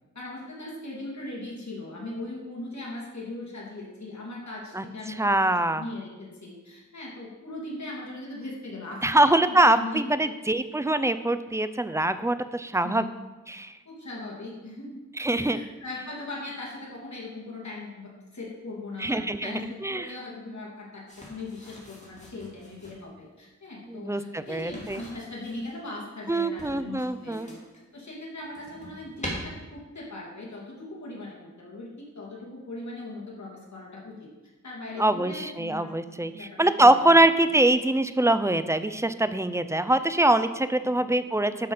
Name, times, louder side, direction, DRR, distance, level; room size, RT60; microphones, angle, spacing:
voice 1, 0.1-5.5 5.8-10.3 12.8-13.1 13.8-15.0 15.3-27.6 27.9-34.3 34.6-35.9 36.2-37.1 41.0-41.1, left 2 dB, 65° left, -4 dB, 3.0 m, -39 dB
voice 2, 5.2-5.8 9.0-13.0 13.5-13.7 15.2-15.6 19.0-20.1 23.9-25.0 26.3-27.5 35.0-41.7, right 1 dB, 10° right, 11 dB, 0.5 m, -23 dB
sound 1, 21.1-23.0 24.4-25.8 26.6-27.8 28.3-29.3, equal, 25° left, 2.6 m, -43 dB
11.5 x 6.0 x 5.1 m, 1.2 s
wide cardioid pair, 80°, 30 cm